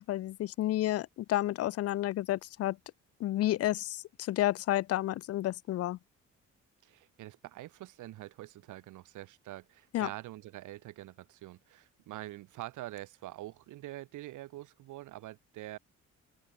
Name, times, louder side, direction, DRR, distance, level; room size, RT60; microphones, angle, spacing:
voice 1, 0.0-2.8 3.2-6.0 9.9-10.1, left 14 dB, 55° left, 0.5 m, -31 dB
voice 2, 6.8-15.8, right 16 dB, 80° right, 1.2 m, -45 dB
open air
cardioid pair, 90°, 30 cm